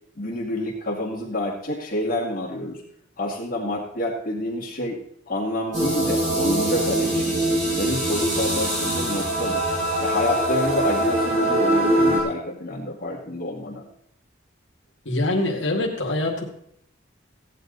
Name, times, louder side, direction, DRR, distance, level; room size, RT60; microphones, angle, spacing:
voice 1, 0.2-2.8 3.2-5.0 5.3-7.4 7.7-9.6 10.0-13.9, left 1 dB, 45° left, -5 dB, 2.4 m, -28 dB
sound 1, 5.7-12.2, right 1 dB, 40° right, 5.2 m, -23 dB
voice 2, 15.1-16.4, left 2 dB, 75° left, 0 dB, 2.2 m, -24 dB
16.5 x 9.9 x 4.0 m, 0.71 s
head